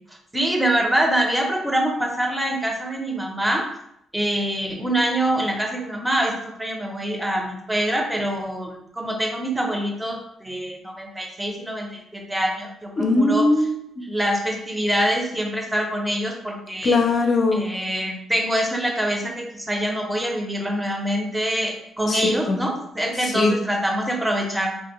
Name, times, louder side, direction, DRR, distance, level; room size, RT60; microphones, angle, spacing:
voice 1, 0.3-3.7 4.1-13.5 14.0-17.0 17.5-24.7, right 1 dB, 10° right, 1 dB, 0.6 m, -25 dB
voice 2, 13.0-14.0 16.8-17.6 22.1-22.6 23.3-23.5, left 2 dB, 50° left, 3 dB, 0.5 m, -20 dB
2.8 x 2.6 x 2.9 m, 0.76 s
cardioid pair, 90°, 0 cm